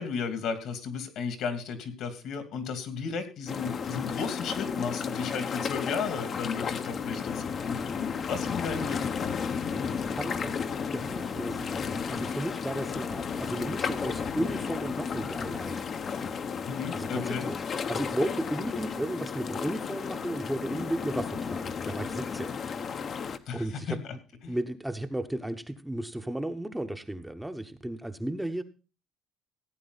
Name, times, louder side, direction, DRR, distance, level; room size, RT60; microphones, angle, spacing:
voice 1, 0.0-9.3 16.6-17.5 23.5-24.0 24.4-24.6, left 6 dB, 65° left, 8 dB, 2.6 m, -34 dB
sound 1, 3.5-23.4, left 6 dB, 45° left, 1.0 m, -33 dB
voice 2, 10.1-10.6 10.9-15.8 16.9-17.6 17.9-22.5 22.9-24.0 24.5-28.6, right 1 dB, 5° right, 6 dB, 1.0 m, -34 dB
16.0 x 8.8 x 4.1 m, 0.33 s
cardioid pair, 115°, 0 cm